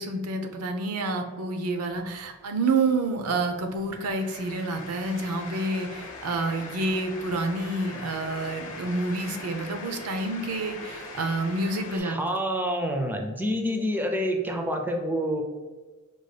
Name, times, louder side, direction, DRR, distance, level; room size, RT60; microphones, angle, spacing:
voice 1, 0.0-12.2, right 2 dB, 85° right, 5 dB, 0.6 m, -28 dB
sound 1, 1.9-12.0, left 3 dB, 60° left, 0.8 m, -42 dB
voice 2, 11.9-15.4, equal, 10° right, 3 dB, 0.4 m, -27 dB
5.3 x 2.2 x 3.2 m, 1.3 s
head